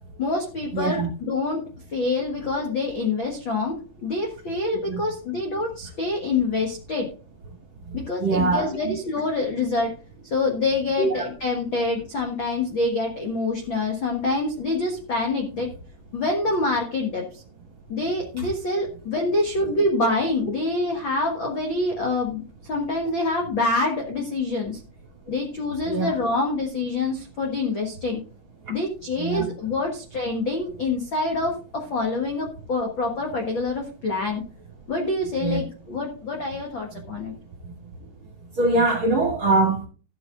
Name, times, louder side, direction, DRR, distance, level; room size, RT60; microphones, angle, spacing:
voice 1, 0.2-1.6 1.9-7.1 7.9-9.9 10.2-15.7 16.1-17.4 17.9-24.8 25.3-28.2 28.7-34.4 34.9-37.3, left 2 dB, 65° left, 1.2 m, -26 dB
voice 2, 0.7-1.1 4.9-5.0 8.2-8.9 11.0-11.3 18.4-18.5 25.9-26.1 29.2-29.4 35.4-35.6 38.6-39.8, right 3 dB, 45° right, 1.7 m, -22 dB
13.0 x 7.8 x 3.8 m
omnidirectional pair, 4.6 m